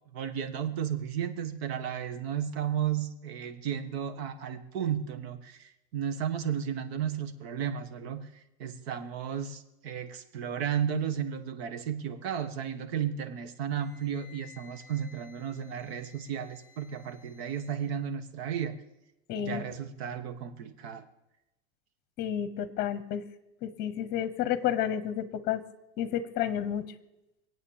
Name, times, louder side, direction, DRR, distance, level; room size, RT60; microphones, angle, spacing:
voice 1, 0.1-18.7 19.4-21.1, right 8 dB, 75° right, 10 dB, 1.6 m, -34 dB
Wind instrument woodwind instrument, 13.7-17.9, left 6 dB, ahead, 7.9 m, -57 dB
voice 2, 19.3-19.6 22.2-23.2 23.6-25.6 26.0-26.8, left 10 dB, 30° left, 14 dB, 1.0 m, -30 dB
22.5 x 8.6 x 7.2 m, 0.93 s
supercardioid pair, 165°, 31 cm